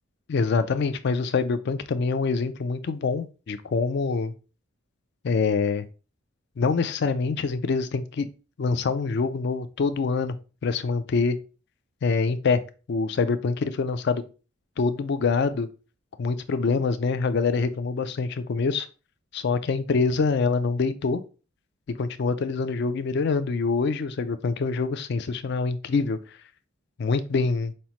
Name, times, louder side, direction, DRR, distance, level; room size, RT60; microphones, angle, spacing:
voice 1, 0.3-4.3 5.2-5.9 6.6-8.3 8.6-10.3 10.6-11.4 12.0-12.6 12.9-14.2 14.8-15.7 16.2-18.9 19.3-21.2 22.0-26.2 27.0-27.7, left 4 dB, 55° left, 0.4 m, -25 dB
5.3 x 2.1 x 2.9 m
head